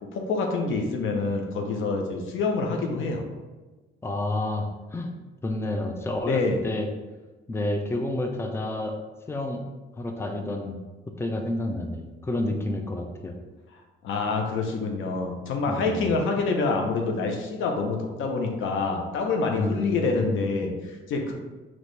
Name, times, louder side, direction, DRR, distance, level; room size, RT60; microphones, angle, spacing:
voice 1, 0.0-3.2 6.3-6.6 14.0-21.3, left 3 dB, 80° left, 2 dB, 0.7 m, -27 dB
voice 2, 4.0-5.1 5.4-6.9 7.5-9.0 9.3-9.6 10.0-10.8 11.2-13.4 15.7-16.1 19.5-20.6, left 1 dB, 10° left, 4 dB, 0.5 m, -29 dB
4.2 x 3.0 x 3.2 m, 1.2 s
cardioid pair, 90°, 20 cm